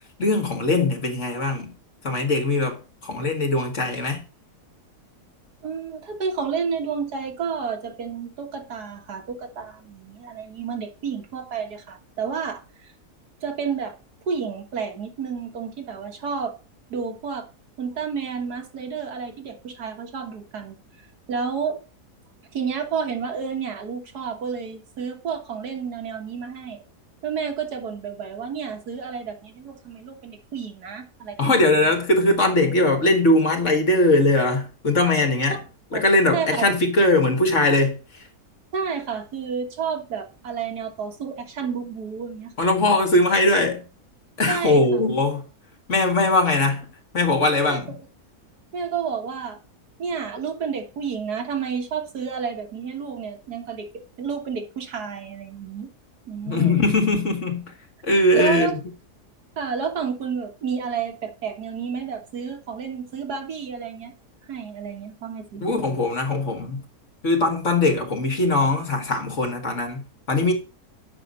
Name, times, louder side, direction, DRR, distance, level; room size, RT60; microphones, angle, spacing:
voice 1, 0.2-1.8 2.0-4.2 31.4-35.6 35.9-38.0 42.6-43.9 44.4-45.4 45.9-46.9 47.1-47.9 56.5-57.7 58.0-58.8 65.6-66.8 67.2-70.5, left 2 dB, 50° left, 2.2 m, -20 dB
voice 2, 5.6-12.6 13.4-13.9 14.3-16.5 16.9-17.5 17.8-20.8 21.3-21.8 22.5-26.8 27.2-31.5 35.9-36.0 36.3-36.6 38.7-42.7 44.5-44.8 47.7-47.8 48.7-49.6 50.0-53.9 54.2-55.9 56.3-56.8 58.3-58.7 59.6-64.1 64.5-65.9, right 6 dB, 80° right, 2.1 m, -30 dB
8.4 x 6.0 x 5.4 m
omnidirectional pair, 1.7 m